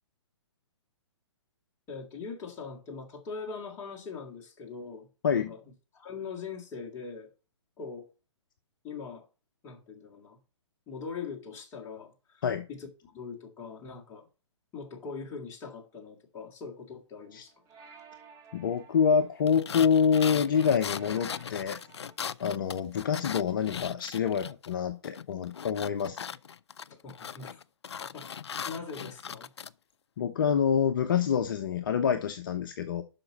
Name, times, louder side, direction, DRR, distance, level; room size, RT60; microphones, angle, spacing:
voice 1, 1.9-5.1 5.3-5.6 5.9-7.3 7.8-8.1 8.8-9.3 9.6-10.4 10.9-12.4 12.7-14.3 14.7-17.5 27.0-27.6 28.1-29.5, left 5 dB, 15° left, 1.8 m, -41 dB
sound 1, 17.2-22.2, right 5 dB, 20° right, 1.5 m, -55 dB
voice 2, 18.5-21.8 22.4-26.2 30.2-33.0, left 7 dB, 45° left, 0.7 m, -26 dB
sound 2, 19.5-24.7 25.0-29.7, left 7 dB, 65° left, 0.4 m, -39 dB
7.8 x 5.9 x 5.5 m
figure-of-eight pair, 125°, 15 cm